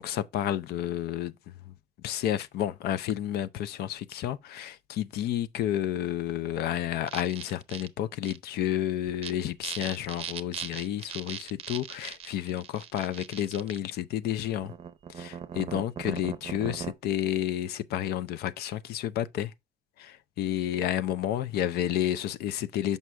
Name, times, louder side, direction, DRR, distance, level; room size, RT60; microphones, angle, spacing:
voice 1, 0.0-1.7 2.0-14.7 15.1-19.5 20.0-23.0, left 11 dB, 90° left, 0.6 m, -31 dB
sound 1, 7.1-7.9 8.2-8.4 9.1-9.3 9.6-13.8 14.6-16.9, right 8 dB, 40° right, 0.7 m, -39 dB
6.2 x 5.4 x 3.3 m
cardioid pair, 140°, 16 cm